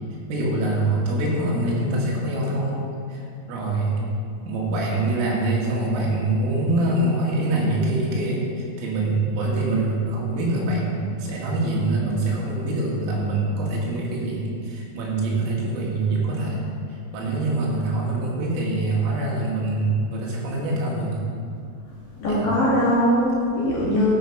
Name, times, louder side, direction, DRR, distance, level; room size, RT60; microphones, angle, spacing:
voice 1, 0.3-3.2 3.5-4.0 4.5-8.5 8.8-16.8 17.1-21.1 22.3-22.5, right 2 dB, 80° right, -4 dB, 4.3 m, -24 dB
voice 2, 22.2-24.1, equal, 50° left, -9 dB, 3.4 m, -21 dB
13.0 x 5.5 x 5.3 m, 2.4 s
omnidirectional pair, 5.9 m